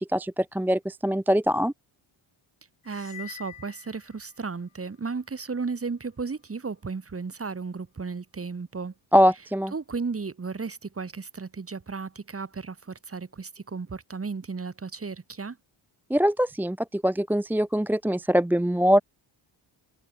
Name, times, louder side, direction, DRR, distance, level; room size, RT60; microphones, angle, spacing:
voice 1, 0.0-1.7 9.1-9.7 16.1-19.0, equal, 5° right, 0.5 m, -23 dB
sound 1, 2.8-4.7, left 11 dB, 70° left, 5.5 m, -46 dB
voice 2, 2.8-8.9 9.7-15.6, right 4 dB, 25° right, 3.9 m, -34 dB
cardioid pair, 110°, 50 cm